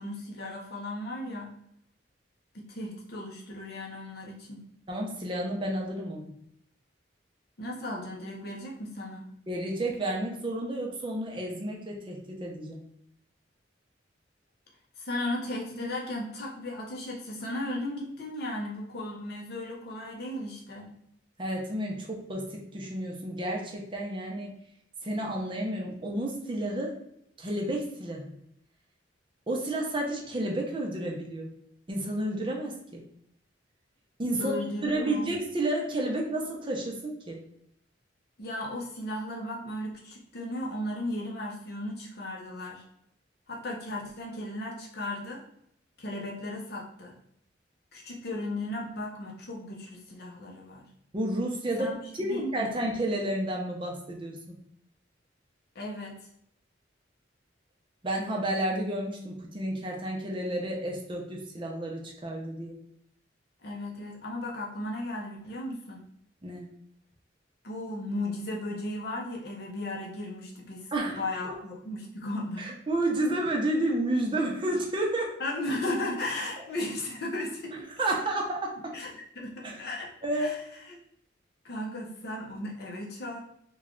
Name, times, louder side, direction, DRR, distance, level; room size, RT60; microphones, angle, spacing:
voice 1, 0.0-1.5 2.5-4.6 7.6-9.3 15.0-21.0 34.4-35.3 38.4-42.8 43.5-45.4 46.0-47.1 47.9-50.8 51.8-51.9 52.2-52.8 55.7-56.2 63.6-66.0 67.6-72.8 75.4-77.8 78.9-79.1 79.4-80.6 80.9-81.0 81.6-83.4, left 1 dB, 55° left, -2 dB, 0.7 m, -36 dB
voice 2, 4.9-6.3 9.5-12.8 21.4-24.6 25.0-27.0 27.4-28.3 29.5-31.5 31.9-33.0 34.2-34.5 34.8-37.4 51.1-51.9 52.2-54.6 58.0-62.8 66.4-66.7 70.9-71.5 72.6-75.3 77.7-78.9 79.6-79.8 80.2-80.5, right 1 dB, 25° right, 0 dB, 0.6 m, -31 dB
3.2 x 2.3 x 3.7 m, 0.72 s
head